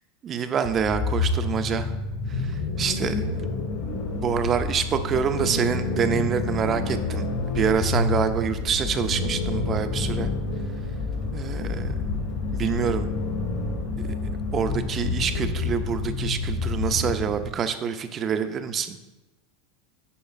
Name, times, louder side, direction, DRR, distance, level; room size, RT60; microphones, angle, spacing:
voice 1, 0.2-1.9 2.3-3.2 4.1-7.3 7.5-10.3 11.3-11.9 12.5-13.1 14.5-19.0, right 7 dB, 35° right, 9 dB, 0.5 m, -26 dB
sound 1, 0.6-17.5, left 3 dB, 55° left, 1.5 m, -28 dB
8.4 x 5.4 x 2.4 m, 1.1 s
hypercardioid pair, 95°, 0 cm